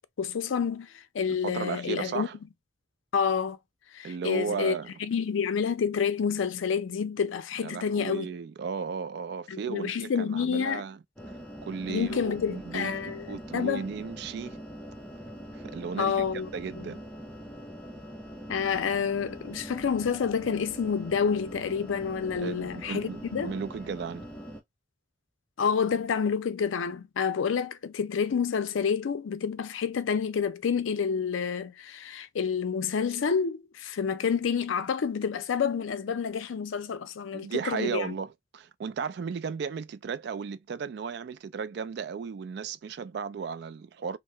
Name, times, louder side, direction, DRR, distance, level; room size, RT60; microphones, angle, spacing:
voice 1, 0.2-2.3 3.1-3.6 3.9-4.8 5.0-8.3 9.5-10.8 11.9-13.8 16.0-16.5 16.8-16.9 18.5-23.5 25.6-38.1, left 6 dB, 85° left, 0.4 m, -29 dB
voice 2, 1.3-2.4 4.0-4.9 7.6-11.0 11.6-14.6 15.5-16.3 16.5-17.0 22.4-24.3 37.3-44.2, right 6 dB, 55° right, 0.3 m, -35 dB
sound 1, 11.2-24.6, equal, 5° left, 0.6 m, -43 dB
2.8 x 2.0 x 3.1 m
head